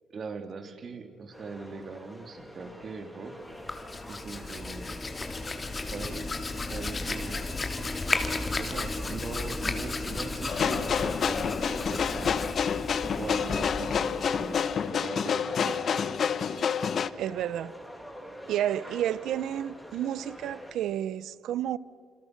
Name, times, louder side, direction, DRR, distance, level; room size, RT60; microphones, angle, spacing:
voice 1, 0.1-3.4 4.1-4.9 5.9-6.3 6.7-7.4 8.6-12.4 13.1-14.6 15.0-15.9, right 4 dB, 50° right, 3.0 m, -40 dB
sound 1, 1.3-20.7, equal, 5° left, 6.5 m, -46 dB
Hands, 3.5-14.9, left 3 dB, 30° left, 2.6 m, -34 dB
sound 2, 10.5-17.1, left 7 dB, 55° left, 1.0 m, -28 dB
voice 2, 17.2-17.7 18.5-21.8, right 11 dB, 80° right, 0.6 m, -31 dB
29.5 x 27.0 x 6.6 m
cardioid pair, 90°, 0 cm